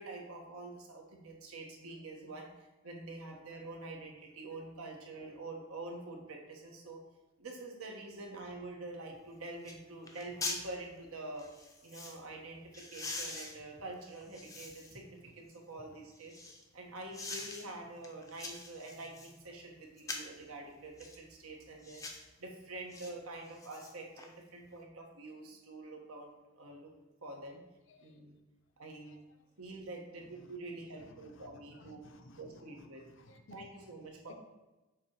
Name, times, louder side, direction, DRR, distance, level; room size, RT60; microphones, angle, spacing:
voice 1, 0.0-7.0 7.4-11.5 11.8-16.3 16.7-22.0 22.4-26.9 27.2-27.6 28.0-28.4 28.8-29.2 29.6-32.0 32.4-33.0 33.5-34.3, right 2 dB, 80° right, 1 dB, 1.2 m, -46 dB
sound 1, 9.1-9.2 9.6-9.8 10.1-10.6 11.4-12.2 12.7-15.0 15.5-16.6 17.1-17.6 18.0-19.4 20.0-20.4 21.0-21.2 21.8-22.3 22.9-23.1 23.5-24.3 24.6-24.7, left 3 dB, 15° left, 0.5 m, -43 dB
voice 2, 31.0-33.7 34.3-34.4, left 1 dB, 60° left, 5 dB, 0.6 m, -57 dB
7.1 x 3.0 x 4.6 m, 1.1 s
head